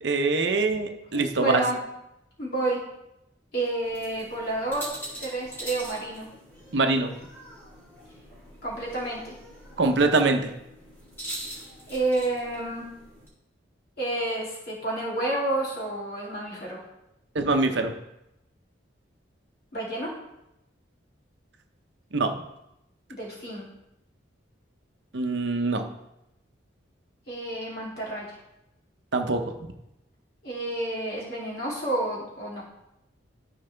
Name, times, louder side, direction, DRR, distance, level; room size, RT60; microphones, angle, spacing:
voice 1, 0.0-1.6 6.7-7.1 9.8-10.5 17.3-17.9 22.1-22.4 25.1-25.9 29.1-29.4, right 3 dB, 65° right, 6 dB, 0.7 m, -23 dB
voice 2, 1.1-1.8 2.4-2.8 3.5-4.9 5.2-6.3 8.6-9.4 11.9-12.9 14.0-16.8 19.7-20.1 23.1-23.6 27.3-28.3 30.4-32.6, right 2 dB, 50° left, -5 dB, 2.8 m, -30 dB
sound 1, 3.8-13.3, right 1 dB, 10° left, 2.7 m, -43 dB
13.5 x 4.7 x 3.4 m, 0.88 s
head